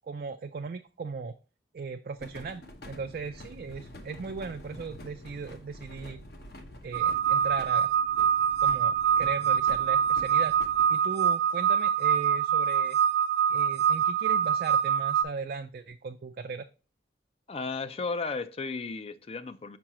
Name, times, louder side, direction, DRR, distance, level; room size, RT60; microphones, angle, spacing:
voice 1, 0.0-1.3 1.7-6.2 6.8-7.9 8.6-10.6 10.9-13.0 13.5-16.7, right 4 dB, 55° right, 0.3 m, -38 dB
sound 1, 2.2-10.9, left 1 dB, 60° left, 0.9 m, -47 dB
sound 2, 6.9-15.2, right 8 dB, 70° right, 0.7 m, -25 dB
voice 2, 17.5-19.8, left 4 dB, 35° left, 0.4 m, -34 dB
6.0 x 5.4 x 2.9 m
head